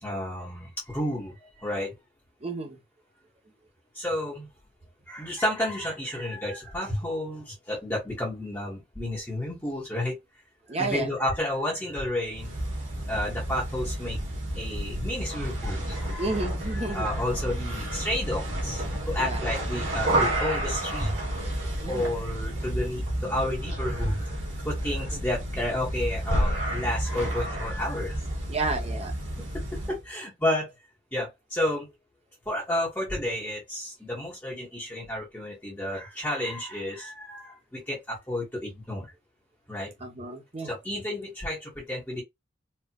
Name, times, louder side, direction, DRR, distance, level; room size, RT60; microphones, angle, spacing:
voice 1, 0.0-1.9 3.9-4.5 5.1-10.2 10.8-12.5 13.1-14.2 14.5-21.2 21.9-24.2 24.6-28.2 29.9-30.7 31.1-31.9 32.4-39.1 39.7-39.9 40.6-42.2, left 1 dB, 10° left, 1.3 m, -31 dB
voice 2, 2.4-2.8 10.7-11.1 16.2-17.1 19.2-19.6 21.8-22.1 25.1-25.2 28.5-29.1 40.0-40.7, right 3 dB, 30° right, 0.9 m, -31 dB
sound 1, 12.3-30.0, right 1 dB, 85° right, 2.2 m, -30 dB
4.4 x 2.5 x 2.3 m
head